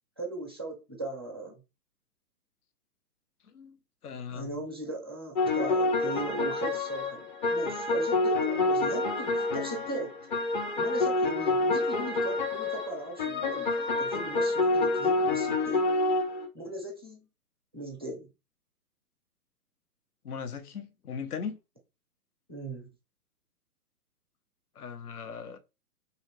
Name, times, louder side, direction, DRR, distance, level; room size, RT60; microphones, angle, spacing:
voice 1, 0.2-1.6 4.3-10.2 10.8-15.8 16.5-17.3 17.7-18.3 22.5-22.9, right 2 dB, 20° right, 0.3 m, -38 dB
voice 2, 4.0-4.5 20.2-21.6 24.8-25.6, left 6 dB, 70° left, 0.7 m, -38 dB
sound 1, 5.4-10.1 10.3-16.5, left 3 dB, 30° left, 0.6 m, -27 dB
2.9 x 2.8 x 2.9 m
figure-of-eight pair, 120°, 47 cm